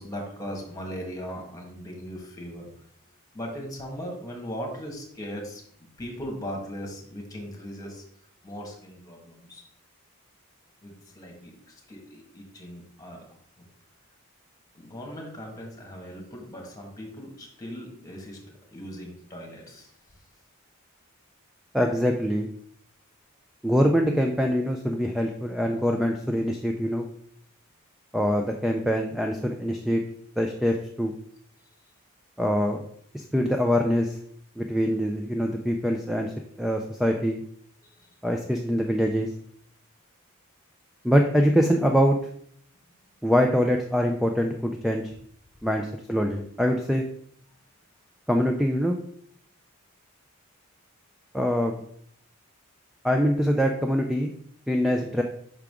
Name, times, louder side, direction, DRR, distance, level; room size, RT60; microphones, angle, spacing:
voice 1, 0.0-2.7 3.3-5.6 6.0-8.0 8.4-9.6 10.8-13.3 14.7-19.9 37.8-38.1, equal, 15° left, -1 dB, 1.5 m, -38 dB
voice 2, 21.7-22.5 23.6-27.0 28.1-30.0 30.4-31.1 32.4-32.8 33.1-34.2 34.6-37.4 38.2-39.3 41.0-42.2 43.2-45.1 45.6-47.0 48.3-48.9 51.3-51.8 53.0-54.3 54.7-55.2, equal, ahead, 3 dB, 0.3 m, -24 dB
5.7 x 4.9 x 3.6 m, 0.66 s
head